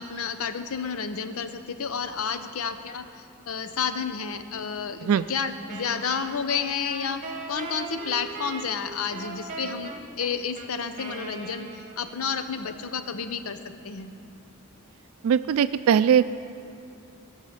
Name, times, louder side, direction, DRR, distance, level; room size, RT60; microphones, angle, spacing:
voice 1, 0.0-3.1 3.5-7.2 7.5-13.6 13.8-14.1, left 6 dB, 90° left, 10 dB, 0.7 m, -31 dB
Wind instrument woodwind instrument, 5.7-12.3, right 3 dB, 35° right, 1.2 m, -39 dB
voice 2, 15.2-16.3, right 8 dB, 80° right, 15 dB, 0.3 m, -20 dB
17.0 x 6.4 x 5.6 m, 2.5 s
head